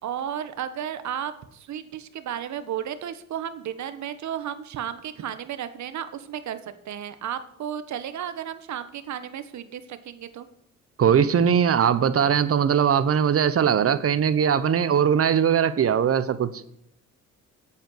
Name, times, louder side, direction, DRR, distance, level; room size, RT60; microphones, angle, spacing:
voice 1, 0.0-10.5, right 9 dB, 70° right, 1.4 m, -33 dB
voice 2, 11.0-16.5, right 8 dB, 50° right, 1.1 m, -20 dB
8.8 x 8.7 x 8.0 m
cardioid pair, 90°, 30 cm